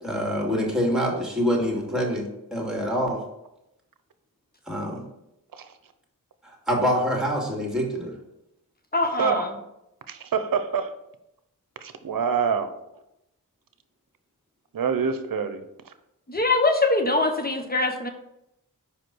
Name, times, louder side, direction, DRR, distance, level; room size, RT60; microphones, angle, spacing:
voice 1, 0.0-3.2 4.7-5.0 6.4-8.2, equal, ahead, -1 dB, 2.7 m, -26 dB
voice 2, 8.9-9.5 16.3-18.1, left 2 dB, 25° left, 6 dB, 1.2 m, -23 dB
voice 3, 10.1-10.9 11.8-12.7 14.7-15.6, right 6 dB, 70° right, 10 dB, 0.8 m, -26 dB
5.1 x 5.1 x 6.2 m, 0.85 s
cardioid pair, 50°, 35 cm